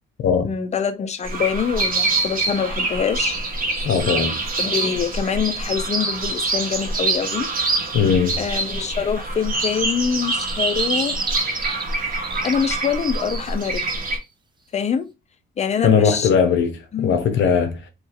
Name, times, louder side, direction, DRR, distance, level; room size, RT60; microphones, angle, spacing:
voice 1, 0.4-3.4 4.6-7.5 8.4-11.3 12.4-14.0 14.7-15.1 15.6-16.3 16.9-17.2, left 7 dB, 35° left, 0.5 m, -24 dB
sound 1, 1.2-14.2, right 3 dB, 45° right, 1.0 m, -25 dB
voice 2, 3.8-4.4 7.9-8.4 15.8-17.9, left 6 dB, 70° left, 0.7 m, -19 dB
sound 2, 10.2-14.2, right 4 dB, 25° right, 0.5 m, -33 dB
2.9 x 2.4 x 2.5 m
cardioid pair, 90°, 20 cm